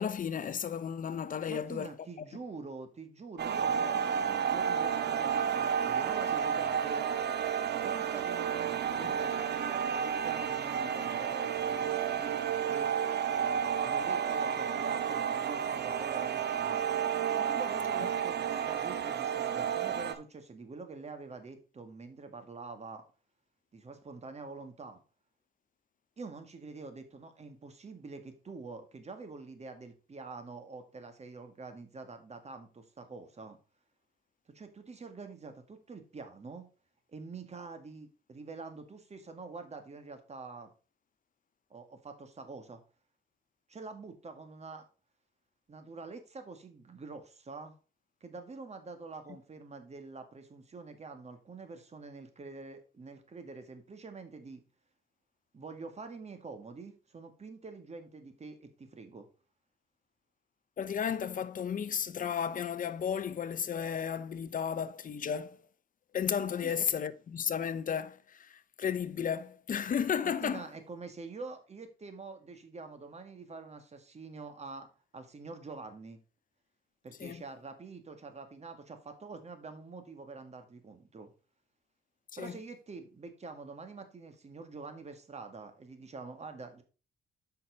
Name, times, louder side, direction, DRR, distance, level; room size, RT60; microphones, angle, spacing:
voice 1, 0.0-1.9 60.8-65.6 66.1-70.7 77.2-77.4 82.3-82.6, left 7 dB, 45° left, 0.7 m, -33 dB
voice 2, 1.4-7.0 7.7-12.9 13.8-16.8 17.4-23.0 23.7-25.0 26.2-33.6 34.5-36.7 37.1-40.7 41.7-42.8 43.7-44.9 45.7-47.7 48.2-54.6 55.5-59.3 66.6-66.7 70.2-74.9 75.1-76.2 77.0-81.3 82.4-86.8, right 4 dB, 35° right, 1.8 m, -46 dB
sound 1, 3.4-20.1, right 8 dB, 55° right, 1.0 m, -31 dB
8.2 x 5.9 x 4.0 m
cardioid pair, 90°, 20 cm